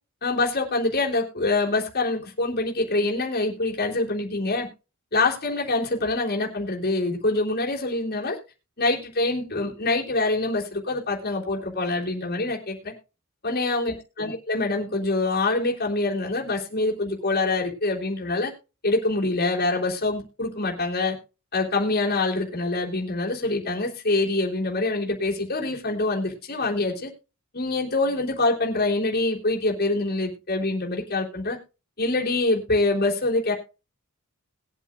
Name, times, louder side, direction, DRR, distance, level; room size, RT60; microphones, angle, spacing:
voice 1, 0.2-4.7 5.1-8.4 8.8-12.9 13.4-18.5 18.8-21.2 21.5-27.1 27.5-31.6 32.0-33.5, left 2 dB, 45° left, -1 dB, 3.5 m, -25 dB
21.0 x 8.3 x 2.5 m, 0.31 s
head